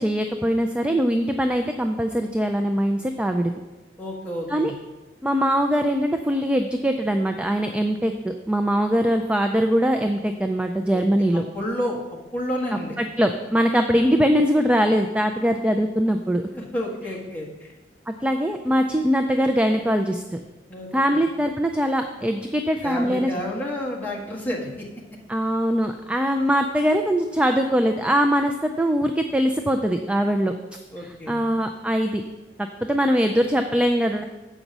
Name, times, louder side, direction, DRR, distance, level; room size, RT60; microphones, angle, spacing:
voice 1, 0.0-3.5 4.5-4.7 5.2-11.4 13.0-16.5 18.1-20.2 20.9-23.3 25.3-30.5 31.0-32.2 32.9-34.2, equal, 5° right, 5 dB, 0.3 m, -22 dB
voice 2, 4.0-4.7 11.3-12.0 12.3-13.0 16.5-17.7 20.7-21.2 22.8-24.9 30.9-31.4, equal, 10° left, -5 dB, 1.6 m, -30 dB
7.9 x 5.3 x 6.1 m, 1.1 s
head